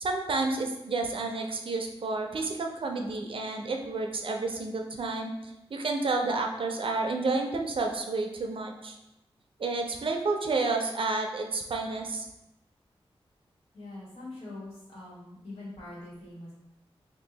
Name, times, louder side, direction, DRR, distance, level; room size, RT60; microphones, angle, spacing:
voice 1, 0.0-9.0 9.6-12.3, right 3 dB, 60° right, 3 dB, 0.4 m, -30 dB
voice 2, 13.7-16.5, left 2 dB, 85° left, -8 dB, 1.5 m, -43 dB
2.7 x 2.4 x 3.8 m, 0.90 s
wide cardioid pair, 125°, 10 cm